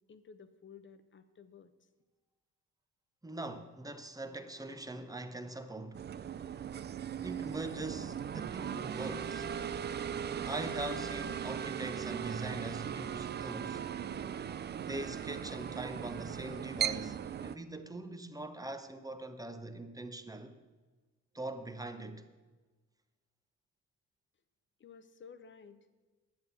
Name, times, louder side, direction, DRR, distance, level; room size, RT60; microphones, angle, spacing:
voice 1, 0.1-1.9 24.8-25.8, left 6 dB, 40° left, 0.9 m, -54 dB
voice 2, 3.2-6.1 7.2-9.6 10.5-13.9 14.9-20.6 21.3-22.3, right 2 dB, 10° right, 0.9 m, -42 dB
sound 1, 5.9-17.6, right 8 dB, 35° right, 0.4 m, -38 dB
10.5 x 7.6 x 7.1 m
cardioid pair, 90°, 30 cm